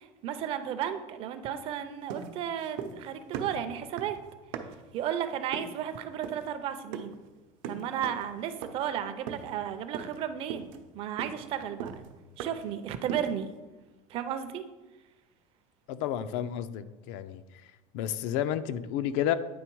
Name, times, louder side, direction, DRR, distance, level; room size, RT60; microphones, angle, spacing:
voice 1, 0.0-4.2 4.9-7.2 7.6-10.7 10.9-11.9 12.4-13.5 14.1-14.6, right 9 dB, 35° right, 10 dB, 0.4 m, -34 dB
sound 1, 2.1-3.1 3.3-4.9 5.5-5.8 6.2-6.5 6.9-7.2 7.6-8.3 8.6-8.9 9.3-9.6 9.9-10.2 10.5-12.7 13.1-13.4, right 7 dB, 85° right, 0.7 m, -40 dB
voice 2, 15.9-17.4 17.9-19.3, left 10 dB, 65° left, 13 dB, 0.4 m, -31 dB
9.4 x 3.5 x 4.5 m, 1.2 s
cardioid pair, 170°, 16 cm